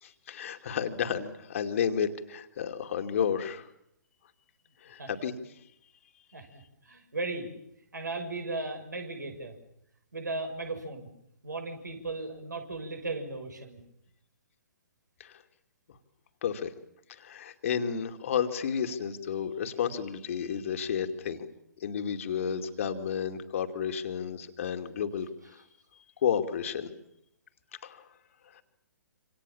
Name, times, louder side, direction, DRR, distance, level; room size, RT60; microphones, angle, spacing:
voice 1, 0.0-3.7 4.8-5.3 15.2-15.3 16.4-16.7 17.1-21.5 21.8-25.3 26.2-26.9 27.8-28.0 28.6-28.7, left 7 dB, 45° left, 6 dB, 2.6 m, -31 dB
voice 2, 6.8-7.5 7.9-9.5 10.1-11.1 11.4-13.8, right 3 dB, 70° right, 6 dB, 6.4 m, -36 dB
27.0 x 27.0 x 7.2 m, 0.78 s
figure-of-eight pair, 125°, 10 cm